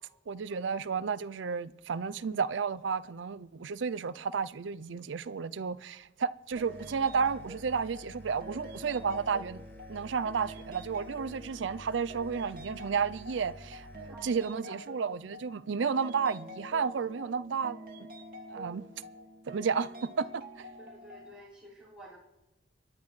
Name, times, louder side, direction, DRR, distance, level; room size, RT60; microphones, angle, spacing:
voice 1, 0.3-9.6 9.9-17.8 18.5-18.8 19.5-20.7, right 6 dB, 85° right, 0.5 m, -32 dB
sound 1, 6.5-14.1, equal, 15° left, 3.9 m, -51 dB
sound 2, 6.6-21.3, equal, 50° right, 2.0 m, -47 dB
voice 2, 20.8-22.2, right 1 dB, 5° right, 5.1 m, -51 dB
29.0 x 11.5 x 3.2 m
head